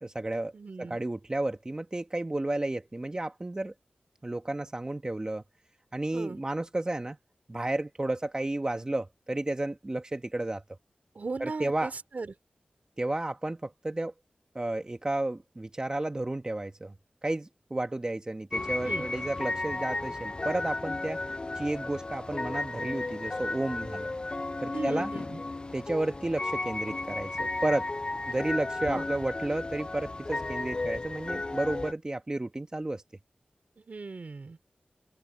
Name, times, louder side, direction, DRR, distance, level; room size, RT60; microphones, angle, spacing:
voice 1, 0.0-0.5 0.8-3.7 4.2-5.4 5.9-7.2 7.5-10.6 11.4-11.9 13.0-14.1 14.5-16.9 17.2-21.2 21.5-24.1 24.6-25.1 25.7-27.9 28.3-33.0, right 2 dB, 25° right, 1.2 m, -32 dB
voice 2, 0.5-1.0 6.1-6.4 11.1-12.3 18.8-19.1 24.7-25.4 28.9-29.1 33.8-34.6, right 4 dB, 60° right, 2.9 m, -38 dB
sound 1, 18.5-31.9, left 2 dB, 30° left, 0.3 m, -34 dB
open air
wide cardioid pair, 75°, 3 cm